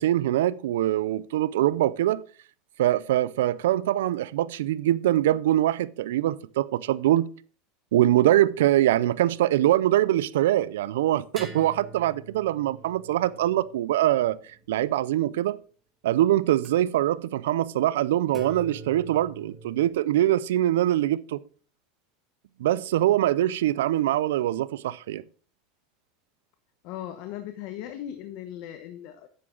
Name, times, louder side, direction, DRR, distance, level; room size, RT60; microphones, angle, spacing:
voice 1, 0.0-2.2 2.8-7.3 7.9-14.4 14.7-15.6 16.0-21.4 22.6-25.2, right 13 dB, 85° right, 0.4 m, -23 dB
sound 1, 9.3-9.7 11.4-15.1 16.6-16.7 18.3-19.9, right 2 dB, 15° right, 2.1 m, -45 dB
voice 2, 26.8-29.3, left 11 dB, 60° left, 1.0 m, -38 dB
9.7 x 7.6 x 3.8 m
supercardioid pair, 120°, 0 cm